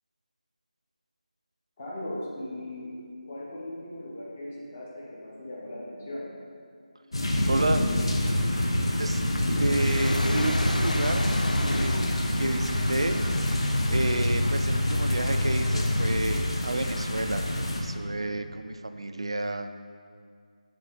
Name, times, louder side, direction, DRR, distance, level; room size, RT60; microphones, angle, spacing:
voice 1, 1.8-2.9 3.3-6.3, left 1 dB, 15° left, -6 dB, 0.8 m, -38 dB
sound 1, 7.1-17.8, left 1 dB, 40° left, 0.9 m, -27 dB
voice 2, 7.5-7.8 9.0-9.2 9.6-13.2 13.9-17.5 17.8-19.7, right 2 dB, 45° right, 8 dB, 0.4 m, -30 dB
sound 2, 9.1-16.5, left 1 dB, 75° left, 0.6 m, -30 dB
9.6 x 3.3 x 5.2 m, 2.2 s
figure-of-eight pair, 180°, 4 cm